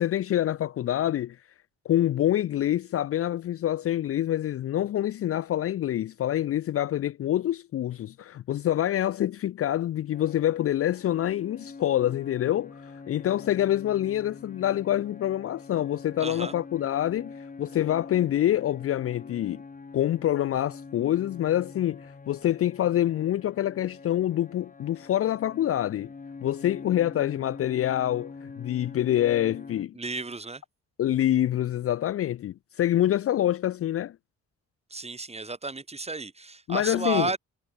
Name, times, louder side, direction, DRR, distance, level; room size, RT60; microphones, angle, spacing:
voice 1, 0.0-1.4 1.9-12.8 13.1-17.3 17.6-19.6 19.9-26.1 26.4-29.9 31.0-34.2 36.7-37.3, left 12 dB, 50° left, 0.5 m, -26 dB
sound 1, 10.1-29.9, left 4 dB, 25° left, 3.2 m, -45 dB
voice 2, 16.2-16.5 29.9-30.6 34.9-37.4, right 3 dB, 20° right, 3.8 m, -32 dB
cardioid pair, 90°, 30 cm